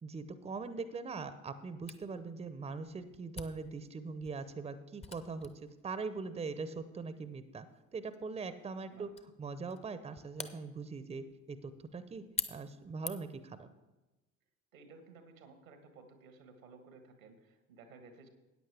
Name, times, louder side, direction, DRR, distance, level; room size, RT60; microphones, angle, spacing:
voice 1, 0.0-5.5 5.8-7.7 7.9-13.7, right 4 dB, 15° right, 13 dB, 0.7 m, -42 dB
Camera, 1.9-13.5, left 4 dB, 15° left, 0.8 m, -48 dB
voice 2, 14.7-18.3, right 4 dB, 80° right, 8 dB, 1.5 m, -56 dB
14.0 x 9.2 x 3.4 m, 1.1 s
figure-of-eight pair, 65°, 40 cm